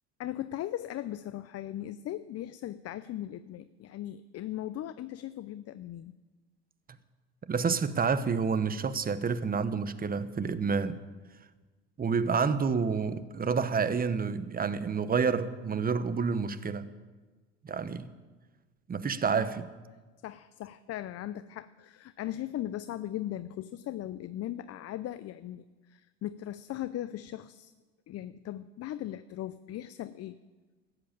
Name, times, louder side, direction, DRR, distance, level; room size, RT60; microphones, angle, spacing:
voice 1, 0.2-6.1 20.2-27.7 28.1-30.4, left 13 dB, 45° left, 0.6 m, -38 dB
voice 2, 7.5-11.0 12.0-16.9 17.6-18.1 18.9-19.7, right 5 dB, 25° right, 1.0 m, -29 dB
14.0 x 7.9 x 8.8 m
supercardioid pair, 80°, 34 cm